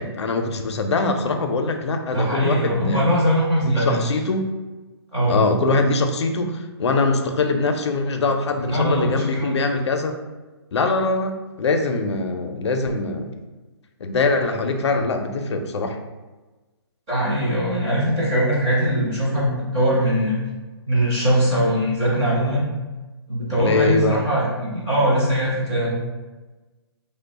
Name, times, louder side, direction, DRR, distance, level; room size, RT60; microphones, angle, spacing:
voice 1, 0.0-3.1 3.6-4.4 5.3-10.1 10.7-13.3 14.0-16.0 23.6-24.2, left 3 dB, 85° left, 6 dB, 0.4 m, -22 dB
voice 2, 2.1-4.0 5.1-5.4 8.7-9.5 17.1-20.4 20.9-22.6 23.3-25.9, equal, 10° right, -9 dB, 0.5 m, -21 dB
2.9 x 2.0 x 3.9 m, 1.2 s
hypercardioid pair, 180°, 14 cm